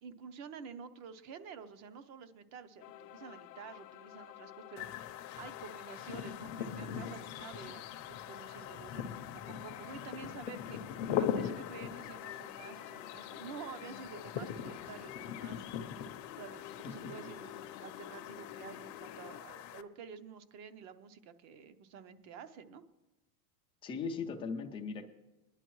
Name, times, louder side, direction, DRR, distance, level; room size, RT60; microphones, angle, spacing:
voice 1, 0.0-15.7 16.4-22.8, right 6 dB, 35° right, 13 dB, 0.7 m, -50 dB
sound 1, 2.8-19.4, left 13 dB, 90° left, 0.6 m, -51 dB
sound 2, 4.8-19.8, left 9 dB, 35° left, 0.7 m, -41 dB
voice 2, 16.8-17.2 23.8-25.1, left 5 dB, 15° left, 4 dB, 0.3 m, -39 dB
20.0 x 10.5 x 3.1 m, 1.0 s
supercardioid pair, 140°, 49 cm